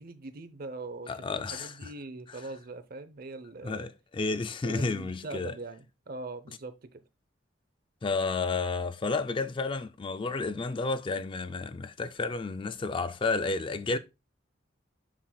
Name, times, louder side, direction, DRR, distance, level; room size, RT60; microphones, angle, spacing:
voice 1, 0.0-3.9 4.6-7.0, right 3 dB, 50° right, 0.7 m, -42 dB
voice 2, 1.1-1.9 3.6-5.5 8.0-14.0, left 3 dB, 25° left, 0.4 m, -31 dB
7.2 x 5.7 x 2.3 m
head